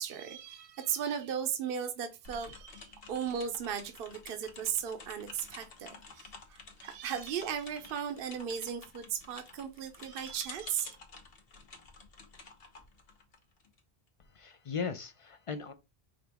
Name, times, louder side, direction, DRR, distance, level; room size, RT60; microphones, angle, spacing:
voice 1, 0.0-11.0, right 8 dB, 65° right, 0.9 m, -36 dB
sound 1, 2.2-13.8, left 4 dB, 65° left, 1.2 m, -51 dB
voice 2, 14.3-15.7, left 5 dB, 45° left, 0.4 m, -37 dB
5.1 x 2.9 x 3.4 m
omnidirectional pair, 1.0 m